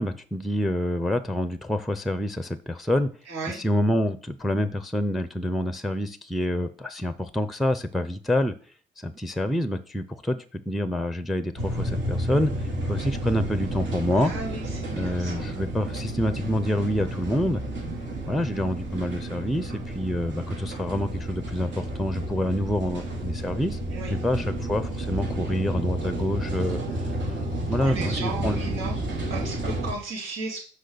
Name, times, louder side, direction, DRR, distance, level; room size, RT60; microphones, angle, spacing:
voice 1, 0.0-3.1 3.5-8.5 9.0-14.3 14.9-17.6 18.3-23.8 24.1-26.8 27.7-28.6, equal, ahead, 12 dB, 0.6 m, -27 dB
voice 2, 3.3-3.6 14.1-15.5 23.9-24.1 27.8-29.0 29.3-30.6, right 3 dB, 85° right, -4 dB, 4.0 m, -35 dB
sound 1, 11.6-29.9, right 1 dB, 65° right, 2.9 m, -31 dB
6.3 x 4.9 x 6.9 m, 0.41 s
cardioid pair, 90°, 20 cm